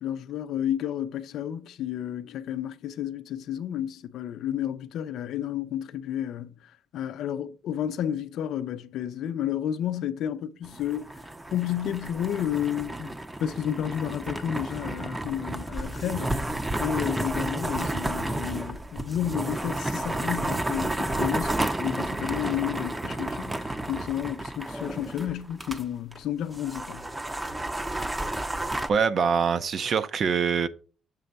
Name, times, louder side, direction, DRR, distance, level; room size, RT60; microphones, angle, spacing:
voice 1, 0.0-11.1 11.5-27.1, left 10 dB, 80° left, 0.5 m, -31 dB
sound 1, 10.6-25.8 26.1-26.2 26.5-28.9, right 1 dB, 15° right, 0.6 m, -31 dB
voice 2, 28.9-30.7, right 6 dB, 55° right, 0.6 m, -24 dB
7.5 x 3.3 x 5.3 m
cardioid pair, 90°, 0 cm